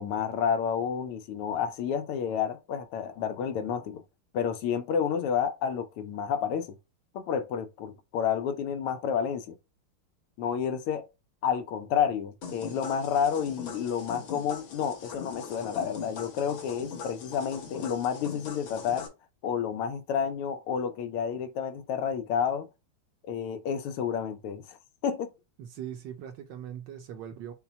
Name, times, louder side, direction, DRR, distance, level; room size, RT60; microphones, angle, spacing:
voice 1, 0.0-4.0 4.3-6.8 7.1-9.5 10.4-11.1 11.4-19.1 19.4-22.7 23.3-24.8 25.0-25.3, left 7 dB, 90° left, 1.6 m, -30 dB
sound 1, 12.4-19.1, left 5 dB, 70° left, 2.0 m, -41 dB
voice 2, 25.6-27.5, right 9 dB, 70° right, 1.1 m, -40 dB
5.7 x 2.2 x 4.1 m
omnidirectional pair, 2.4 m